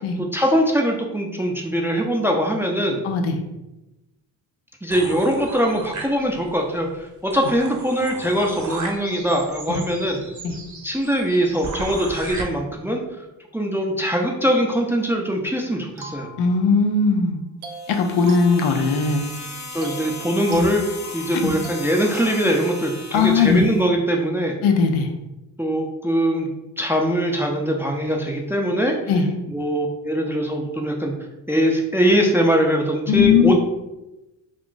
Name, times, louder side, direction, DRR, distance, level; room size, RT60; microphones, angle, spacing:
voice 1, 0.2-3.0 4.8-10.2 10.8-13.0 13.5-16.3 19.7-20.8 21.1-24.6 25.6-26.5 26.8-28.9 29.5-31.1 31.5-33.6, equal, 5° right, 1 dB, 0.4 m, -22 dB
voice 2, 3.0-3.4 9.7-9.8 10.4-10.5 16.4-17.4 17.9-19.3 20.5-20.7 21.3-21.5 23.1-23.6 24.6-25.1 29.1-29.3 33.1-33.6, left 5 dB, 75° left, 5 dB, 0.6 m, -19 dB
sound 1, 4.9-6.6 7.0-7.1 7.3-12.4, right 3 dB, 40° right, 0.7 m, -35 dB
sound 2, 16.0-17.0 17.6-19.3 19.8-22.5, right 3 dB, 85° right, 0.6 m, -41 dB
sound 3, 17.7-23.8, left 3 dB, 35° left, 0.7 m, -37 dB
2.4 x 2.4 x 3.7 m, 0.98 s
supercardioid pair, 45°, 49 cm